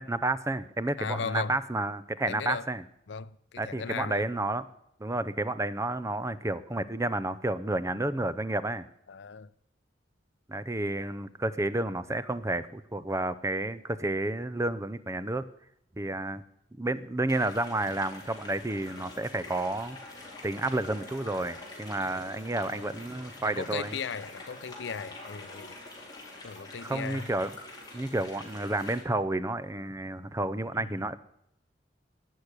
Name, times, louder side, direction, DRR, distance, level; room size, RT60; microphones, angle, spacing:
voice 1, 0.0-2.8 3.6-4.6 5.0-8.8 10.5-15.4 16.0-16.4 16.7-20.0 20.4-23.9 26.8-27.5 27.9-31.1, right 2 dB, 15° right, 0.6 m, -31 dB
voice 2, 1.0-1.6 2.2-2.7 3.1-4.3 9.1-9.5 22.7-23.0 23.4-25.8 26.4-27.3 30.7-31.0, left 5 dB, 75° left, 0.6 m, -37 dB
sound 1, 17.3-29.0, left 2 dB, 20° left, 4.1 m, -46 dB
17.5 x 6.5 x 9.8 m
head